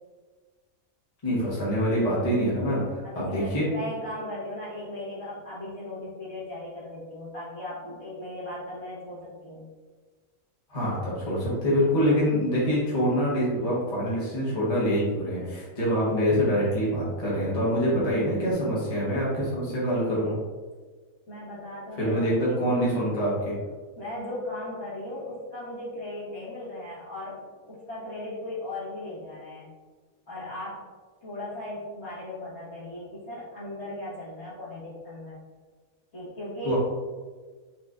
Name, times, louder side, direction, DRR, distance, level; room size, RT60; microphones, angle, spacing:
voice 1, 1.2-3.7 10.7-20.3 21.9-23.6 36.6-36.8, equal, 25° left, -8 dB, 1.2 m, -25 dB
voice 2, 3.0-9.7 21.3-22.9 24.0-29.7 30.3-30.8 31.2-35.4 36.1-36.8, left 1 dB, 50° left, -9 dB, 1.8 m, -37 dB
4.4 x 4.1 x 2.5 m, 1.4 s
omnidirectional pair, 1.5 m